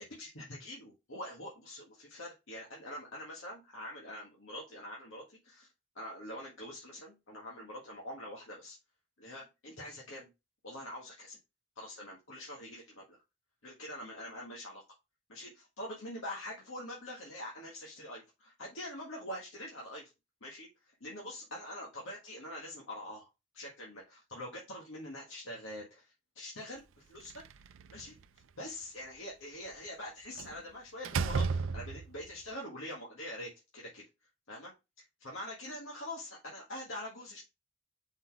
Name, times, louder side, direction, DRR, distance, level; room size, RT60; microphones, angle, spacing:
voice 1, 0.1-5.7 6.0-8.8 9.2-10.3 10.6-11.4 11.8-13.2 13.6-14.8 15.3-20.1 20.4-20.7 21.0-23.3 23.5-27.4 27.9-28.2 28.6-34.0 34.5-34.7 35.2-37.4, left 1 dB, 90° left, -2 dB, 1.8 m, -44 dB
Slam, 27.2-28.2 30.4-30.6 31.0-32.3, right 5 dB, 90° right, 0.4 m, -33 dB
5.4 x 4.1 x 4.7 m, 0.25 s
head